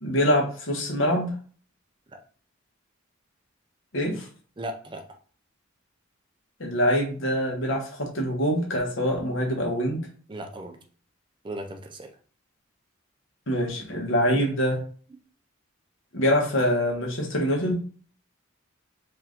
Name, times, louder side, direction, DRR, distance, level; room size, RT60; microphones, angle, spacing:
voice 1, 0.0-1.3 3.9-4.3 6.6-10.0 13.5-14.8 16.1-17.8, equal, 70° left, 0 dB, 1.3 m, -24 dB
voice 2, 4.6-5.1 10.3-10.8 11.4-12.1, right 1 dB, 25° right, 4 dB, 0.5 m, -36 dB
4.5 x 2.6 x 3.6 m, 0.42 s
head